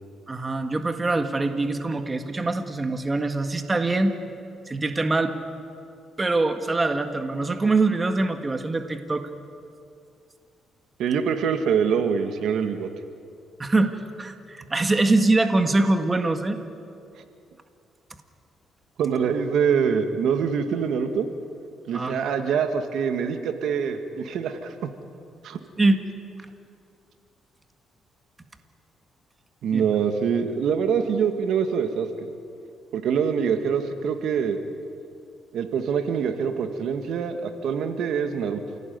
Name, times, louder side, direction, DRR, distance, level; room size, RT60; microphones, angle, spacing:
voice 1, 0.3-4.2 4.7-5.3 6.2-9.3 13.6-16.6 21.9-22.2 25.8-26.0 29.7-29.8, right 2 dB, 25° right, 7 dB, 1.8 m, -23 dB
voice 2, 11.0-12.9 19.0-21.3 21.9-24.9 25.4-25.6 29.6-32.3 32.9-34.6 35.5-38.6, right 7 dB, 75° right, 7 dB, 1.8 m, -24 dB
28.5 x 17.0 x 9.5 m, 2.5 s
cardioid pair, 90°, 0 cm